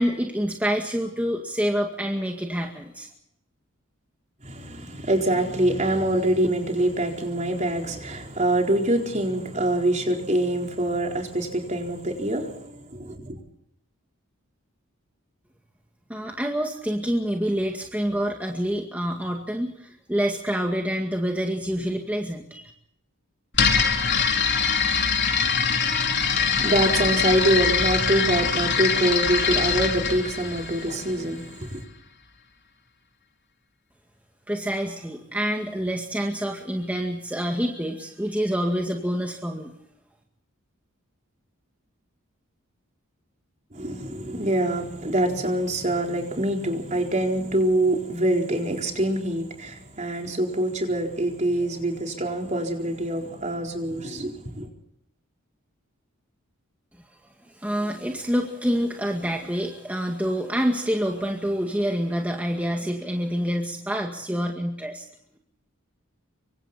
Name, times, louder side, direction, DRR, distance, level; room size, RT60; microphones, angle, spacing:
voice 1, 0.0-3.1 16.1-22.7 34.5-39.7 57.5-65.0, equal, 5° right, 2.0 m, -27 dB
voice 2, 4.4-13.4 26.3-31.8 43.7-54.7, right 1 dB, 35° right, 4.3 m, -25 dB
sound 1, 23.5-31.3, left 6 dB, 55° left, 3.9 m, -23 dB
26.0 x 24.5 x 4.4 m
head